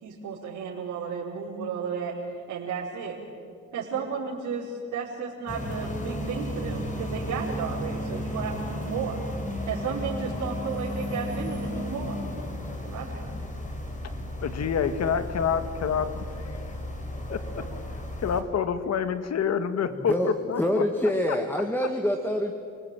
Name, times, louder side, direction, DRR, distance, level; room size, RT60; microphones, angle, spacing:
voice 1, 0.0-2.2 2.5-3.2 3.7-9.2 9.7-12.2 12.8-13.4, right 6 dB, 75° right, -7 dB, 4.8 m, -33 dB
sound 1, 5.5-18.4, equal, 25° left, 4.6 m, -34 dB
voice 2, 14.4-16.6 17.3-17.7 18.2-20.1 20.5-20.8 21.3-21.4, left 7 dB, 60° left, 10 dB, 2.0 m, -27 dB
voice 3, 19.9-20.3 20.6-22.5, left 1 dB, 5° left, 4 dB, 2.2 m, -26 dB
30.0 x 19.5 x 9.3 m, 2.2 s
cardioid pair, 90°, 30 cm